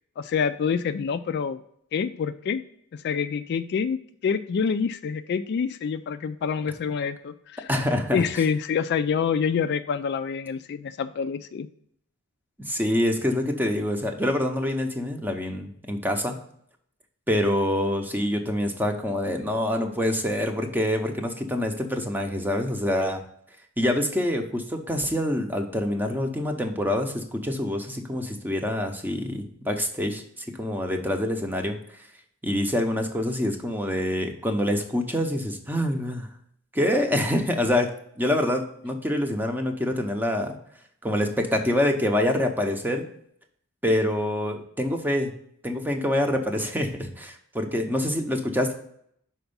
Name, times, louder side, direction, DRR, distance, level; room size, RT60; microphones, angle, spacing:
voice 1, 0.2-1.6 1.9-2.6 3.0-7.7 8.1-11.7, left 6 dB, 50° left, 11 dB, 0.3 m, -27 dB
voice 2, 7.7-8.4 12.7-16.4 17.3-23.2 23.8-32.0 32.4-36.3 36.7-37.9 38.2-40.6 41.0-43.0 43.8-45.3 45.6-48.7, left 1 dB, 10° right, 4 dB, 0.7 m, -26 dB
5.9 x 4.4 x 5.3 m, 0.69 s
head